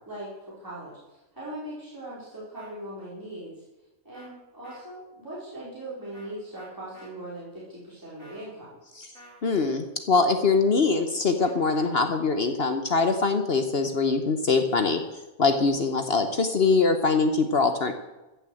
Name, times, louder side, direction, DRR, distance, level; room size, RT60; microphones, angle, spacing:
voice 1, 0.0-3.6 4.0-8.8, right 1 dB, 15° right, -9 dB, 4.2 m, -40 dB
sound 1, 2.5-2.7 4.1-4.3 4.6-4.8 6.1-6.3 6.5-7.1 8.2-8.5 9.1-9.4 11.4-11.9, equal, 70° right, 4.0 m, -50 dB
voice 2, 9.4-15.0 15.4-17.9, left 4 dB, 50° left, 6 dB, 1.1 m, -23 dB
15.0 x 7.0 x 7.7 m, 1.0 s
omnidirectional pair, 1.4 m